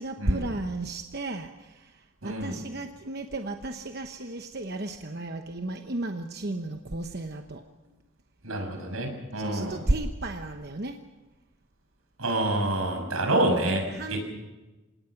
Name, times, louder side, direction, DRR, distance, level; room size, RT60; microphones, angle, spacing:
voice 1, 0.0-7.6 9.4-11.0 13.9-14.2, right 2 dB, 50° right, 5 dB, 1.0 m, -33 dB
voice 2, 2.2-2.6 8.4-9.8 12.2-14.2, right 1 dB, 85° right, 4 dB, 6.1 m, -27 dB
27.0 x 18.5 x 6.0 m, 1.1 s
head